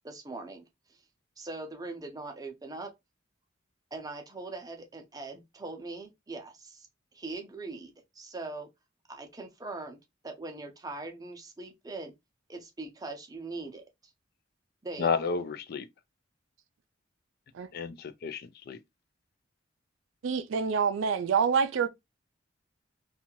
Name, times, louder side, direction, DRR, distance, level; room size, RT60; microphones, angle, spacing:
voice 1, 0.0-0.6 1.4-2.9 3.9-6.9 7.1-8.7 9.1-10.0 10.2-12.1 12.5-13.8 14.8-15.1, right 3 dB, 20° right, 0.5 m, -41 dB
voice 2, 15.0-15.9 17.7-18.8, left 5 dB, 50° left, 0.3 m, -31 dB
voice 3, 20.2-21.9, right 6 dB, 80° right, 0.4 m, -26 dB
2.6 x 2.3 x 2.9 m
head